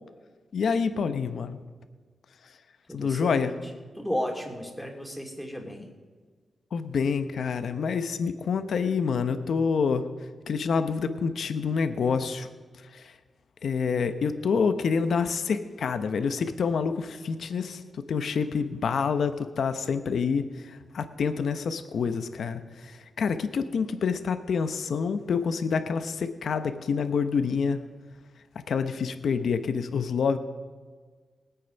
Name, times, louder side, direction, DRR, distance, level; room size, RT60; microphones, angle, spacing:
voice 1, 0.5-1.6 2.4-2.6 2.9-3.5 6.7-10.1 10.5-12.5 12.8-13.2 13.6-27.8 28.7-30.4, left 5 dB, 75° left, 10 dB, 0.9 m, -27 dB
voice 2, 2.9-3.5 4.0-5.9, equal, 5° left, 1 dB, 2.9 m, -33 dB
19.5 x 8.5 x 5.3 m, 1.5 s
cardioid pair, 65°, 0 cm